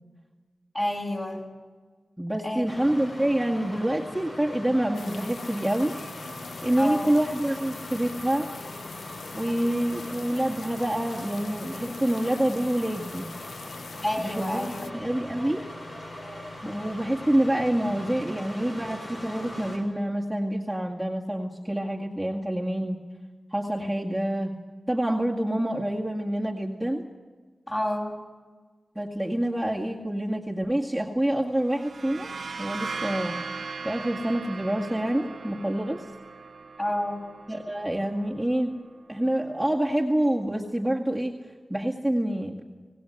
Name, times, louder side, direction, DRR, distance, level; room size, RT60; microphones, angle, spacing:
voice 1, 0.7-1.5 2.4-2.6 6.8-7.1 14.0-15.0 16.6-16.7 27.7-28.1 36.8-37.3, left 1 dB, 25° left, 1 dB, 6.8 m, -29 dB
voice 2, 2.2-5.9 6.6-8.5 9.3-13.3 14.2-15.6 16.7-23.1 23.5-24.5 24.9-27.1 29.0-32.3 32.6-33.4 33.8-36.1 37.5-38.7 39.1-41.4 41.7-42.5, right 1 dB, 5° right, -2 dB, 2.0 m, -27 dB
sound 1, 2.7-19.8, left 1 dB, 60° left, 7.5 m, -41 dB
sound 2, 4.9-14.9, left 5 dB, 90° left, 0.7 m, -43 dB
sound 3, 31.6-39.2, right 4 dB, 70° right, 0.8 m, -39 dB
25.5 x 18.5 x 7.9 m, 1.4 s
cardioid pair, 60°, 0 cm